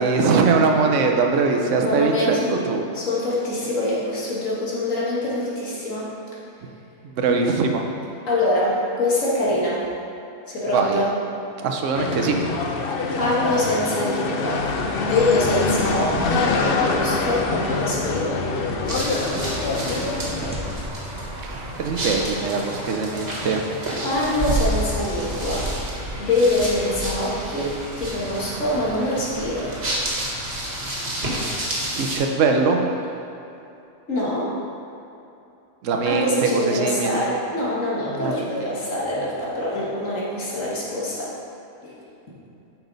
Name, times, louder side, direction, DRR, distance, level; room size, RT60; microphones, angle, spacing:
voice 1, 0.0-2.8 7.0-7.8 10.7-11.0 11.6-12.4 21.4-23.6 31.9-32.8 35.8-37.2 38.1-38.4, right 4 dB, 75° right, 2 dB, 1.1 m, -21 dB
voice 2, 1.8-2.5 2.9-6.1 8.3-9.9 10.5-11.1 13.2-14.6 15.0-18.4 24.0-25.7 26.2-29.7 34.1-34.5 36.1-41.3 41.8-41.9, left 1 dB, 85° left, -6 dB, 2.0 m, -24 dB
sound 1, 11.9-20.5, left 3 dB, 55° left, 0.8 m, -25 dB
sound 2, 14.6-20.9, equal, 5° right, 0.6 m, -36 dB
sound 3, 18.9-32.2, right 1 dB, 50° right, 1.9 m, -29 dB
9.0 x 5.9 x 4.0 m, 2.8 s
omnidirectional pair, 1.3 m